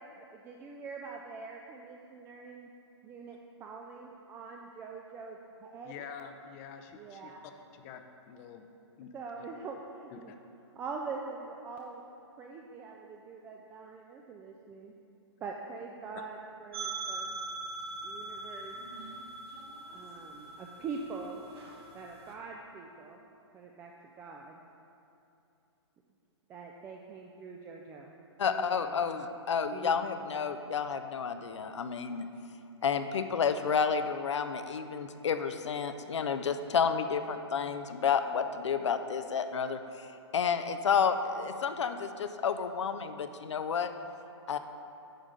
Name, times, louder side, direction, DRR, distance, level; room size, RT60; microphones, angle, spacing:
voice 1, 0.0-2.7 3.0-6.0 7.0-7.4 9.1-10.4 10.8-12.0 12.4-14.9 15.4-17.3 18.0-18.8 19.9-21.4 21.9-23.2 23.5-23.9 24.2-24.6 26.5-28.1 28.5-29.0 29.7-30.2, right 4 dB, 15° right, 0 dB, 0.3 m, -44 dB
voice 2, 5.8-7.3 7.8-8.0 8.3-8.6 9.0-9.1 10.1-10.2 16.2-16.3, left 8 dB, 30° left, 6 dB, 0.6 m, -46 dB
sound 1, 16.7-22.3, right 3 dB, 60° right, 1.3 m, -42 dB
voice 3, 28.4-32.3 32.8-39.8 40.3-43.9 44.5-44.6, left 6 dB, 75° left, 9 dB, 0.5 m, -30 dB
9.1 x 3.6 x 6.6 m, 2.7 s
hypercardioid pair, 135°, 15 cm